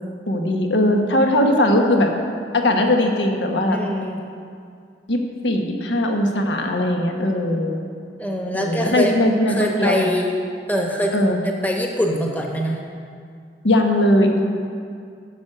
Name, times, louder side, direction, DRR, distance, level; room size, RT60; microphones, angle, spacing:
voice 1, 0.3-2.1 2.5-3.8 5.1-7.8 8.5-10.0 11.1-11.4 13.6-14.4, left 1 dB, 85° left, 3 dB, 1.3 m, -19 dB
voice 2, 3.7-4.3 8.2-9.1 9.5-10.3 10.7-11.2 11.6-12.8, equal, 10° left, 0 dB, 1.1 m, -23 dB
12.5 x 6.2 x 7.8 m, 2.3 s
head